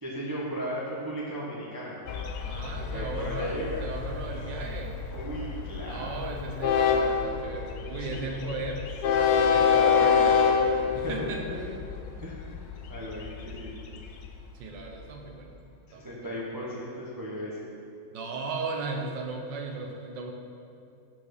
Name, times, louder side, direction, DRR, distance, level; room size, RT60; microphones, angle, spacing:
voice 1, 0.0-1.9 2.9-3.8 5.1-6.2 8.0-8.2 9.5-10.6 11.0-11.1 11.5-11.6 12.2-12.6 12.9-13.8 15.9-17.6, equal, 20° right, -6 dB, 0.5 m, -35 dB
Train, 2.1-15.1, left 6 dB, 80° left, 0.8 m, -28 dB
voice 2, 2.4-5.0 5.9-10.5 10.9-11.4 14.5-15.5 15.9-16.6 18.1-20.3, right 3 dB, 70° right, 1 dB, 1.3 m, -36 dB
5.6 x 4.9 x 6.4 m, 2.7 s
omnidirectional pair, 2.2 m